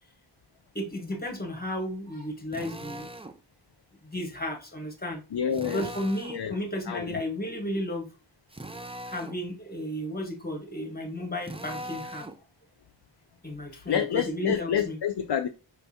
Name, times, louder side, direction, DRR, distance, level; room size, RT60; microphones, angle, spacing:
voice 1, 0.7-3.1 4.1-5.2 5.7-8.1 9.1-12.3 13.4-15.0, left 1 dB, 20° left, 1.3 m, -33 dB
Drill, 2.5-3.4 5.5-6.4 8.5-9.4 11.4-12.4, right 1 dB, 15° right, 0.4 m, -40 dB
voice 2, 5.3-5.9 6.3-6.6 6.9-7.2 13.9-15.5, left 8 dB, 60° left, 0.5 m, -28 dB
5.0 x 3.4 x 2.8 m
wide cardioid pair, 60°, 46 cm